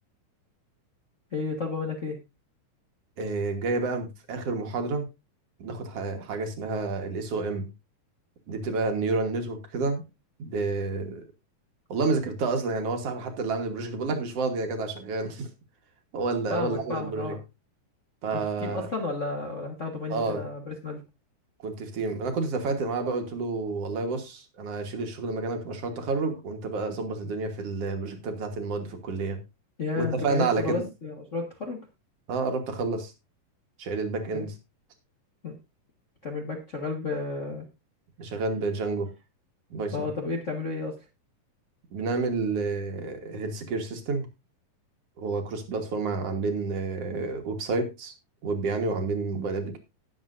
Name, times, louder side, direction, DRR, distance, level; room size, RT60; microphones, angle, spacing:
voice 1, 1.3-2.2 16.5-17.4 18.3-21.0 29.8-31.8 34.3-34.5 35.4-35.5 36.2-37.6 39.9-40.9, left 3 dB, 55° left, 0 dB, 0.8 m, -32 dB
voice 2, 3.2-5.0 5.6-7.7 8.5-10.0 10.4-11.3 11.9-15.5 16.1-17.4 18.2-18.9 20.1-20.5 21.6-29.4 30.0-30.9 32.3-33.1 33.8-34.5 38.2-39.1 39.7-40.1 41.9-44.3 45.2-48.1 48.4-49.8, right 3 dB, 55° right, 5 dB, 2.1 m, -29 dB
19.0 x 7.1 x 2.6 m, 0.26 s
omnidirectional pair, 3.8 m